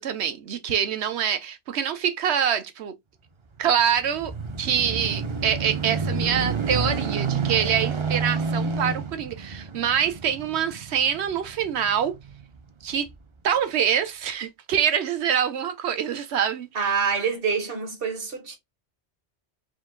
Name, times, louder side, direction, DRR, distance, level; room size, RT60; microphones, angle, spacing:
voice 1, 0.0-2.9 3.6-4.3 4.6-12.2 12.8-13.1 13.4-16.9, right 8 dB, 75° right, 1.0 m, -25 dB
sound 1, 3.6-12.4 13.1-13.2, right 4 dB, 40° right, 0.4 m, -29 dB
voice 2, 16.7-18.6, right 6 dB, 60° right, 1.4 m, -26 dB
4.8 x 2.2 x 3.6 m
omnidirectional pair, 1.1 m